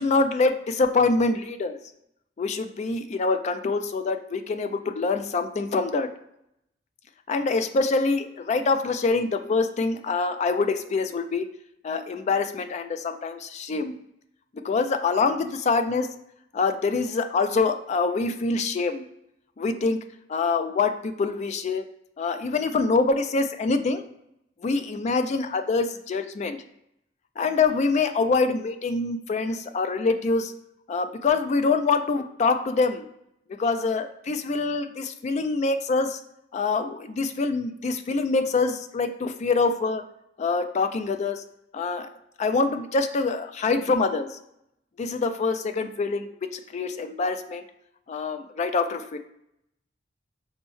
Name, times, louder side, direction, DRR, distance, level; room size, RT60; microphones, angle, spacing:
voice 1, 0.0-1.8 2.4-6.1 7.3-11.5 11.8-13.9 14.5-16.1 16.5-19.0 19.6-20.0 20.3-21.9 22.2-24.0 24.6-26.6 27.4-30.5 30.9-33.1 33.6-36.2 36.5-40.0 40.4-41.4 41.7-42.1 42.4-44.4 45.0-47.6 48.1-49.2, left 4 dB, 40° left, 9 dB, 0.3 m, -25 dB
5.3 x 2.0 x 3.1 m, 0.78 s
head